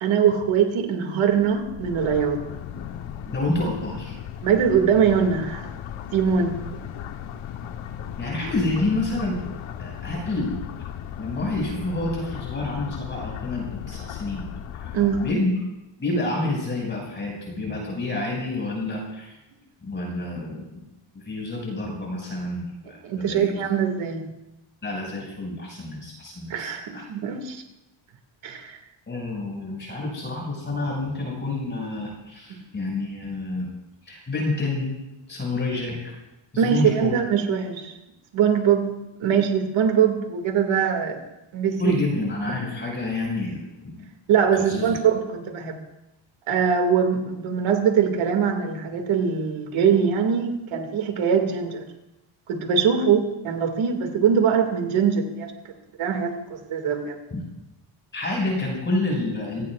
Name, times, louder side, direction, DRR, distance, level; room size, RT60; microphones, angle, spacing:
voice 1, 0.0-2.4 4.4-5.6 6.1-6.6 14.9-15.3 23.0-24.3 26.5-27.6 28.4-28.8 32.5-32.6 36.6-37.9 38.3-38.9 39.2-41.2 41.5-41.9 44.3-45.8 46.5-51.8 52.5-55.5 56.0-57.2, right 7 dB, 70° right, 4 dB, 2.4 m, -22 dB
sound 1, 1.3-15.3, left 9 dB, 70° left, 1.2 m, -36 dB
voice 2, 3.3-4.2 8.2-9.4 9.8-10.5 11.2-14.5 14.7-14.9 15.2-15.5 16.0-19.4 19.9-20.8 21.1-23.6 24.8-27.0 29.1-33.7 34.0-35.0 35.3-36.1 36.5-37.1 41.8-44.1 44.6-45.0 57.3-57.4 58.1-59.7, left 2 dB, 20° left, -3 dB, 6.0 m, -28 dB
28.0 x 18.5 x 2.5 m, 0.96 s
cardioid pair, 155°, 49 cm